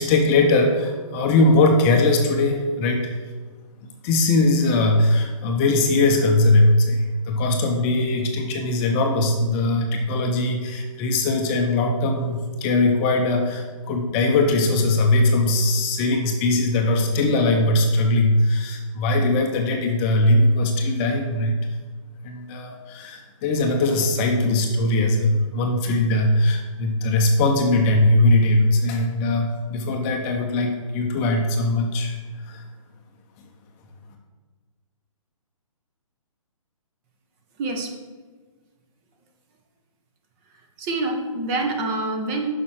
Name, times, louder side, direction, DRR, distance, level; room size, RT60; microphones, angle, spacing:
voice 1, 0.0-3.2 4.0-7.0 7.3-21.5 22.2-32.2 32.5-32.6, left 2 dB, 25° left, 3 dB, 0.8 m, -20 dB
voice 2, 37.6-37.9 40.8-42.5, right 2 dB, 25° right, 3 dB, 1.1 m, -26 dB
6.9 x 5.8 x 6.4 m, 1.4 s
figure-of-eight pair, 140°, 18 cm